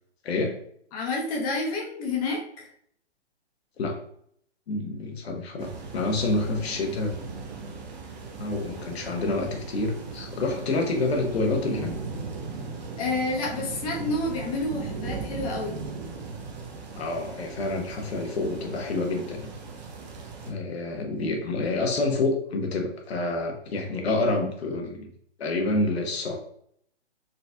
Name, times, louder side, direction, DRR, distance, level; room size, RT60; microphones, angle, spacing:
voice 1, 0.2-0.6 3.8-4.0 4.7-7.1 8.4-11.9 17.0-19.5 20.5-25.1 25.4-26.4, left 2 dB, 65° left, 3 dB, 1.1 m, -28 dB
voice 2, 0.9-2.7 7.7-7.8 13.0-15.9, left 2 dB, 30° left, -1 dB, 1.0 m, -29 dB
sound 1, 5.6-20.5, right 4 dB, 40° right, 0.9 m, -38 dB
4.1 x 4.0 x 2.2 m, 0.67 s
hypercardioid pair, 140°, 34 cm